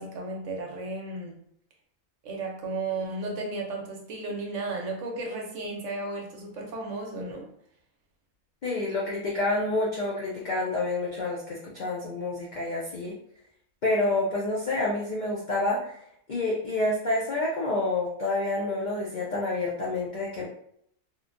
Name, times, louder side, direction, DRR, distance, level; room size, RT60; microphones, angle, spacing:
voice 1, 0.0-1.4 2.2-7.5, right 2 dB, 65° right, 1 dB, 0.8 m, -34 dB
voice 2, 8.6-13.1 13.8-16.0 16.3-20.4, left 2 dB, 65° left, -5 dB, 0.4 m, -28 dB
3.0 x 2.1 x 2.4 m, 0.68 s
omnidirectional pair, 1.5 m